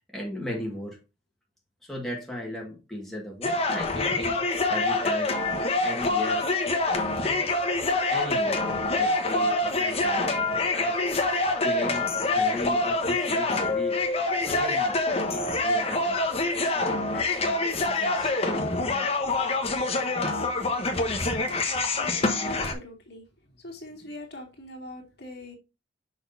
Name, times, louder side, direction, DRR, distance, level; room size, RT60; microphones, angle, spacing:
voice 1, 0.1-1.0 1.8-6.5 7.0-7.5 8.1-11.0 11.3-14.9 15.3-16.2 16.6-19.1, left 1 dB, ahead, 1.9 m, -37 dB
sound 1, 3.4-22.7, left 2 dB, 30° left, 1.2 m, -26 dB
voice 2, 22.0-23.2 23.6-25.6, left 1 dB, 60° left, 2.6 m, -42 dB
6.3 x 6.2 x 2.7 m
head